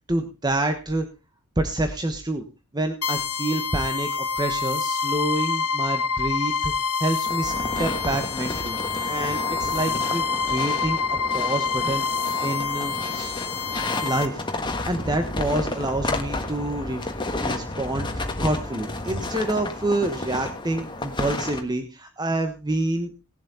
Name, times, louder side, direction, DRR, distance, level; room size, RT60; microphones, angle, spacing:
voice 1, 0.1-1.1 1.6-2.4 2.7-8.8 9.0-11.0 11.3-13.4 14.0-14.4 14.9-17.1 17.4-23.1, right 1 dB, 20° right, 6 dB, 1.2 m, -27 dB
sound 1, 3.0-14.3, left 5 dB, 70° left, 1.3 m, -27 dB
sound 2, 7.2-21.6, left 2 dB, 20° left, 1.5 m, -31 dB
18.5 x 7.5 x 4.1 m, 0.28 s
head